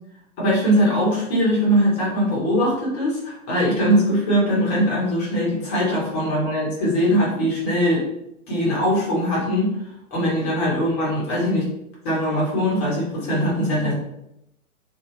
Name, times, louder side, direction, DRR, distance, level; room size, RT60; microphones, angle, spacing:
voice 1, 0.4-8.0 8.5-9.7 10.1-11.7 12.0-13.9, equal, 10° left, -6 dB, 0.5 m, -21 dB
2.6 x 2.1 x 2.9 m, 0.83 s
figure-of-eight pair, 115°, 43 cm